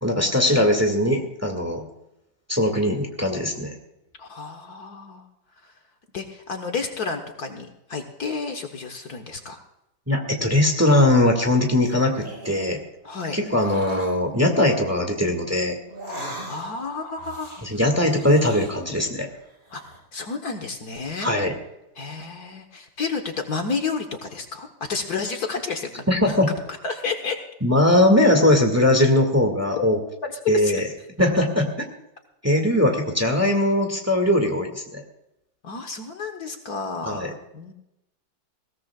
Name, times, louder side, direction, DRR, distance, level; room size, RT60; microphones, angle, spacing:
voice 1, 0.0-1.8 2.5-3.7 10.1-12.8 13.3-15.8 16.2-16.4 17.6-19.3 21.2-21.5 26.1-26.5 27.6-30.0 30.5-30.8 31.2-31.9 32.4-35.0 37.0-37.3, left 1 dB, 10° right, 3 dB, 1.9 m, -20 dB
voice 2, 4.2-5.2 5.6-5.7 6.1-9.6 13.0-13.4 16.5-17.7 19.7-21.3 22.0-26.4 26.8-27.4 30.2-30.8 35.6-37.2 37.5-37.7, left 4 dB, 55° left, 5 dB, 1.7 m, -31 dB
sound 1, 11.6-12.8 13.5-14.2 15.9-16.8 17.2-19.1 19.4-20.0, right 1 dB, 30° right, 5.1 m, -39 dB
21.0 x 17.0 x 2.4 m, 0.88 s
omnidirectional pair, 2.0 m